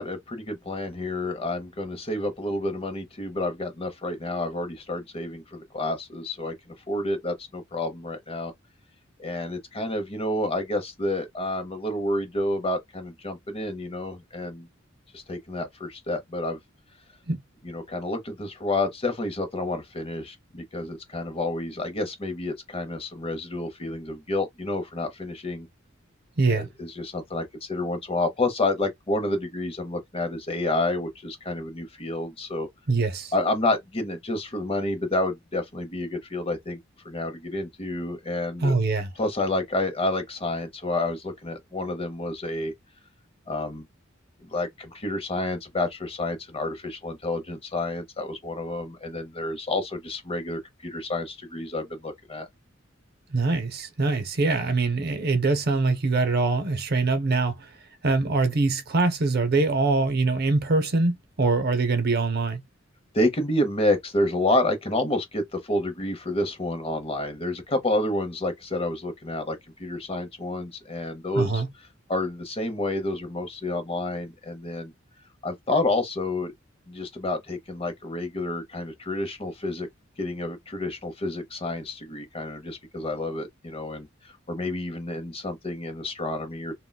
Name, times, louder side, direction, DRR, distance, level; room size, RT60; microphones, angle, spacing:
voice 1, 0.0-6.5 6.9-8.5 9.2-14.7 15.1-16.6 17.6-25.7 26.5-32.7 33.3-36.8 37.0-38.7 39.2-42.7 43.5-43.8 44.5-52.5 63.1-71.6 72.1-74.9 75.4-76.5 76.9-79.9 80.2-86.7, left 2 dB, 30° left, 0.8 m, -29 dB
voice 2, 26.4-26.7 32.9-33.3 38.6-39.1 53.3-57.7 58.0-62.6 71.3-71.7, right 3 dB, 50° right, 0.6 m, -23 dB
3.6 x 2.2 x 2.2 m
head